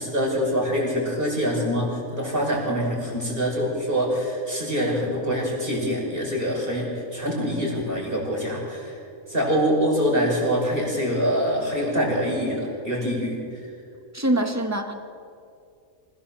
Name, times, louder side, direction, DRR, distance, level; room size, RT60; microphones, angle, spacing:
voice 1, 0.0-9.0 9.3-13.7, equal, 40° right, -2 dB, 6.5 m, -25 dB
voice 2, 14.1-14.9, right 1 dB, 10° right, 5 dB, 1.6 m, -24 dB
27.0 x 17.0 x 7.4 m, 2.4 s
omnidirectional pair, 1.5 m